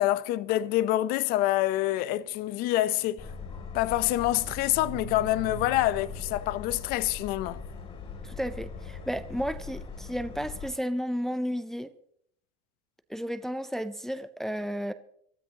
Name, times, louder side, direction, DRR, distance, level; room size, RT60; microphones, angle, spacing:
voice 1, 0.0-3.3 3.7-7.6, left 15 dB, 50° left, 0.6 m, -26 dB
sound 1, 1.6-6.8, right 7 dB, 75° right, 1.4 m, -46 dB
Subway metro underground, 3.2-10.7, left 5 dB, 30° left, 2.9 m, -41 dB
voice 2, 8.2-11.9 13.1-14.9, equal, ahead, 0.4 m, -33 dB
24.0 x 13.0 x 2.9 m
supercardioid pair, 145°, 20 cm